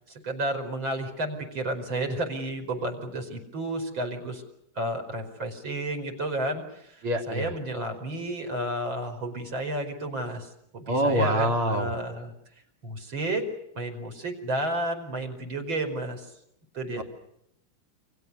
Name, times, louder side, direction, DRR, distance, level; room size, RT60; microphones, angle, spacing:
voice 1, 0.1-4.4 4.8-12.3 12.8-13.5 13.7-16.3 16.7-17.0, right 1 dB, 70° right, 5 dB, 5.6 m, -32 dB
voice 2, 7.0-7.5 10.9-11.9 17.0-17.1, equal, 85° right, 3 dB, 4.6 m, -25 dB
30.0 x 25.0 x 6.9 m, 0.78 s
omnidirectional pair, 2.3 m